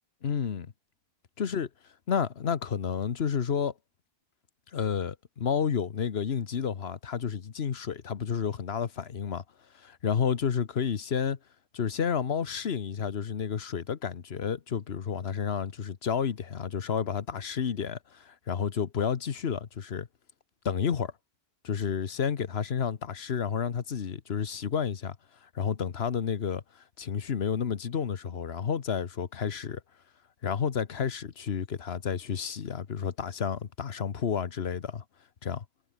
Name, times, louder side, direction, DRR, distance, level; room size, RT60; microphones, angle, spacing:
voice 1, 0.2-0.7 1.4-1.7 2.1-3.7 4.7-9.4 9.7-11.4 11.7-20.1 20.6-21.1 21.6-25.2 25.4-29.8 30.4-35.0 35.4-35.6, left 7 dB, 70° left, 1.3 m, -31 dB
omnidirectional pair, 1.1 m